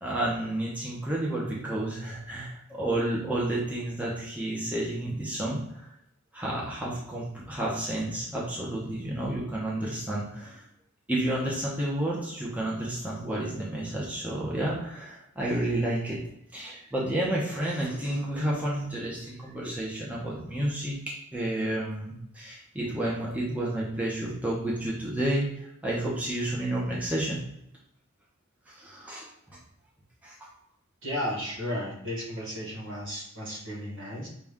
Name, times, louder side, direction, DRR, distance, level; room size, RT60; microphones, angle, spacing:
voice 1, 0.0-5.9 6.3-10.7 11.1-16.2 16.5-27.4 28.7-29.2 30.2-30.5, right 1 dB, 5° right, -5 dB, 0.9 m, -31 dB
voice 2, 31.0-34.3, equal, 60° right, -3 dB, 1.6 m, -34 dB
5.8 x 2.5 x 3.6 m, 0.76 s
head